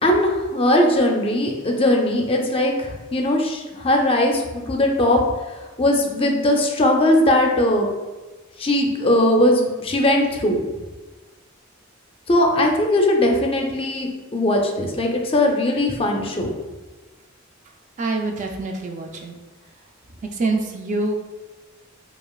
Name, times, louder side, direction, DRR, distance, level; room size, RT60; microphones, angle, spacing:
voice 1, 0.0-5.2 5.8-7.9 8.6-10.6 12.3-16.5, left 1 dB, 30° left, 2 dB, 0.5 m, -19 dB
voice 2, 18.0-19.3 20.3-21.2, right 2 dB, 35° right, 3 dB, 0.3 m, -25 dB
5.0 x 2.4 x 2.3 m, 1.3 s
head